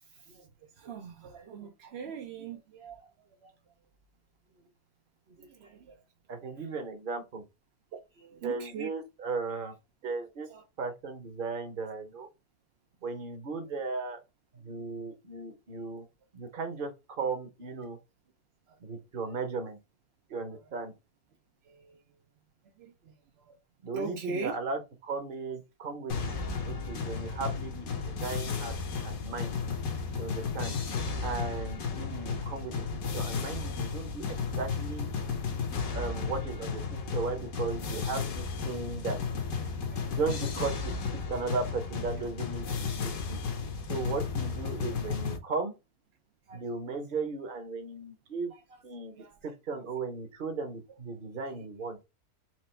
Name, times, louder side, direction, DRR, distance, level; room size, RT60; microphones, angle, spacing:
voice 1, 0.1-0.5 0.8-3.1 3.4-3.5 4.6-4.7 5.3-6.0 7.9-8.9 10.5-10.6 18.7-18.8 21.7-22.0 22.8-23.1 23.4-23.6 23.9-24.5 30.5-30.6 33.6-33.7 39.9-40.2 46.5-46.6 49.1-49.4, right 5 dB, 70° right, 0.6 m, -42 dB
voice 2, 6.3-7.4 8.4-9.8 10.0-10.5 10.8-12.3 13.0-14.2 14.5-16.1 16.3-18.0 18.8-19.8 20.3-20.9 23.8-26.1 26.6-28.8 29.0-29.6 30.2-30.8 31.2-34.3 34.6-35.1 35.9-39.2 40.1-40.9 41.3-42.7 43.3-43.4 43.9-45.7 46.5-48.5 48.8-49.2 49.4-52.0, right 4 dB, 40° right, 0.8 m, -36 dB
sound 1, 26.1-45.4, left 5 dB, 60° left, 1.2 m, -34 dB
4.5 x 2.5 x 4.3 m
omnidirectional pair, 1.9 m